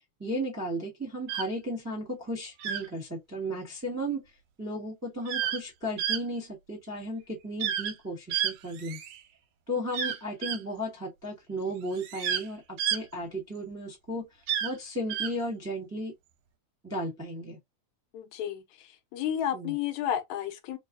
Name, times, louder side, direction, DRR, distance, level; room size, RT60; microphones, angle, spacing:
voice 1, 0.2-9.0 9.7-16.1 16.8-17.6 19.5-19.8, equal, 10° right, 0.6 m, -35 dB
sound 1, 1.3-1.5 2.6-2.9 5.3-5.6 6.0-6.2 7.6-7.9 8.3-9.2 9.9-10.6 11.9-12.4 12.8-13.0 14.5-14.7 15.1-15.3, right 9 dB, 85° right, 2.0 m, -30 dB
voice 2, 18.1-18.6 19.1-20.8, left 10 dB, 85° left, 2.0 m, -31 dB
4.5 x 2.4 x 2.6 m
omnidirectional pair, 3.3 m